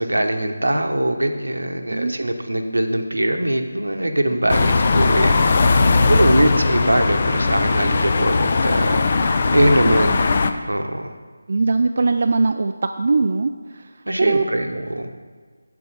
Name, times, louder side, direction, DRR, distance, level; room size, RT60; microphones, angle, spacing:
voice 1, 0.0-10.1 10.6-11.1 14.1-15.1, right 1 dB, 85° right, 5 dB, 1.0 m, -22 dB
sound 1, 4.5-10.5, left 4 dB, 40° left, 0.5 m, -18 dB
voice 2, 5.8-6.4 9.8-10.2 11.5-13.9 14.2-14.4, right 3 dB, 50° right, 6 dB, 0.4 m, -21 dB
8.6 x 7.0 x 4.9 m, 1.5 s
figure-of-eight pair, 160°, 0 cm